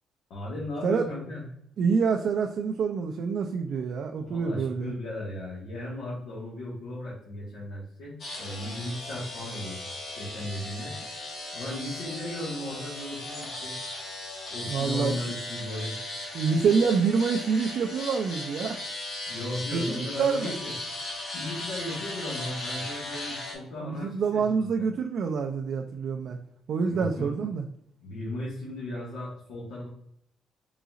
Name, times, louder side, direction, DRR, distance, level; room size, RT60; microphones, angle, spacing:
voice 1, 0.3-1.4 4.2-9.8 10.2-11.0 11.5-13.7 14.5-16.0 19.3-20.7 21.2-24.7 26.9-27.3 28.0-29.9, left 1 dB, 90° left, -6 dB, 1.4 m, -36 dB
voice 2, 1.8-4.9 14.7-15.3 16.3-18.8 19.7-20.6 23.8-26.4 26.7-27.7, right 5 dB, 50° right, 3 dB, 0.3 m, -26 dB
sound 1, 8.2-23.5, left 2 dB, 50° left, 1.1 m, -37 dB
4.0 x 3.8 x 2.4 m, 0.74 s
cardioid pair, 180°, 0 cm